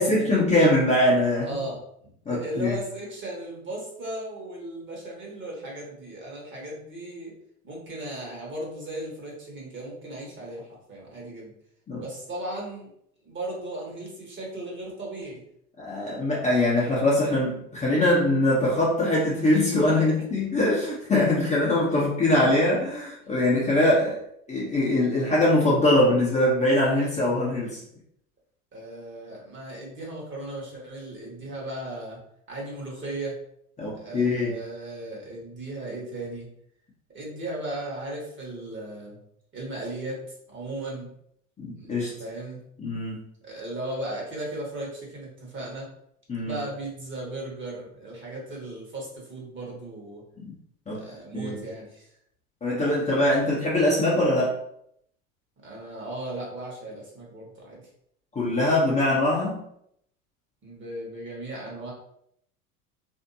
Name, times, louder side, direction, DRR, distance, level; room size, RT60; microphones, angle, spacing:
voice 1, 0.0-1.5 2.3-2.7 11.9-12.0 15.8-24.2 24.5-27.8 33.8-34.6 41.6-42.1 42.8-43.2 46.3-46.6 50.9-51.0 51.3-51.6 52.6-54.6 58.3-59.6, left 1 dB, 15° left, -7 dB, 0.9 m, -22 dB
voice 2, 1.4-7.3 7.6-11.5 12.0-12.9 13.2-15.4 19.9-20.1 21.9-22.1 22.4-22.5 28.7-32.2 32.5-33.4 33.9-36.5 37.1-39.2 39.5-40.2 40.5-41.1 41.7-42.6 43.4-45.9 46.4-50.2 50.9-52.1 55.6-57.8 60.6-61.9, right 1 dB, 25° right, -2 dB, 1.4 m, -36 dB
3.4 x 2.8 x 2.7 m, 0.72 s
figure-of-eight pair, 85°, 45 cm